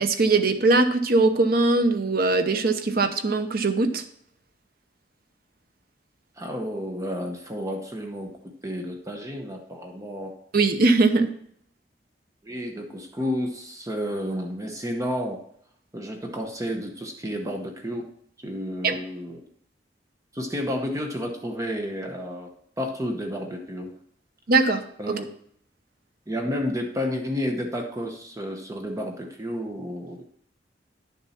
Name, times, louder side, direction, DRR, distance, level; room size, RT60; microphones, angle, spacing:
voice 1, 0.0-4.0 10.5-11.3 18.8-19.0 24.5-25.1, right 3 dB, 60° right, 8 dB, 0.8 m, -21 dB
voice 2, 6.4-10.4 12.4-15.4 15.9-18.1 18.4-19.4 20.3-22.5 22.8-24.0 25.0-25.2 26.3-30.2, equal, 20° right, 3 dB, 0.9 m, -31 dB
10.5 x 7.1 x 4.3 m, 0.66 s
head